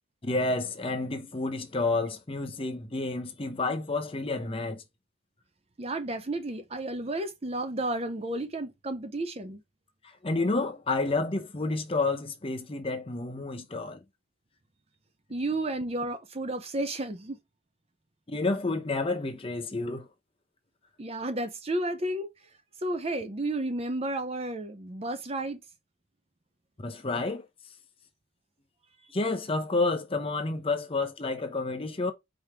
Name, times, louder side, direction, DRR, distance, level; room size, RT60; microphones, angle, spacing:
voice 1, 0.2-4.8 10.2-14.0 18.3-20.1 26.8-27.5 29.1-32.1, left 3 dB, 25° left, 0.7 m, -30 dB
voice 2, 5.8-9.6 15.3-17.4 21.0-22.3 22.8-25.6, right 2 dB, 30° right, 0.6 m, -32 dB
5.0 x 3.0 x 3.4 m
head